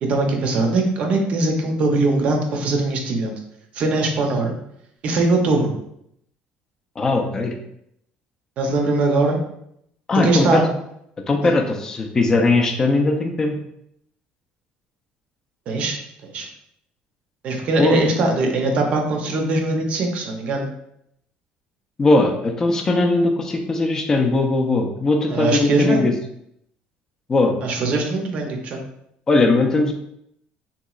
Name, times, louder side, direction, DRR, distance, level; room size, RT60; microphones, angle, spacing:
voice 1, 0.0-3.3 3.7-4.6 5.0-5.7 8.6-9.4 10.2-10.6 11.4-11.5 15.7-16.0 16.2-16.5 17.4-20.7 25.3-26.0 27.6-28.8, right 2 dB, 40° right, 3 dB, 0.6 m, -21 dB
voice 2, 7.0-7.5 10.1-10.7 11.3-13.6 17.8-18.0 22.0-26.1 27.3-27.5 29.3-29.9, left 2 dB, 20° left, 3 dB, 0.4 m, -19 dB
3.7 x 2.9 x 2.3 m, 0.76 s
cardioid pair, 170°, 3 cm